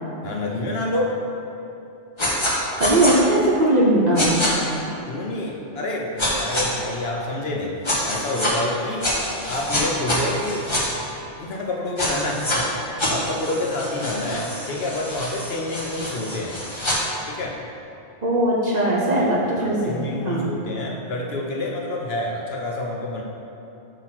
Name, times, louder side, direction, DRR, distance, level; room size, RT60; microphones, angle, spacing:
voice 1, 0.2-1.2 5.1-7.7 8.0-9.1 9.4-10.8 11.3-12.7 13.0-16.6 17.3-17.6 19.6-23.2, left 2 dB, 60° left, -1 dB, 0.9 m, -28 dB
sound 1, 2.2-2.5 2.8-3.1 4.2-4.5 6.2-6.6 7.8-8.5 9.0-10.8 12.0-12.6 13.0-17.0, left 1 dB, 25° left, 1.0 m, -26 dB
voice 2, 2.8-4.4 18.2-20.5, right 1 dB, 40° right, -4 dB, 0.9 m, -19 dB
7.8 x 3.1 x 5.9 m, 2.9 s
omnidirectional pair, 1.3 m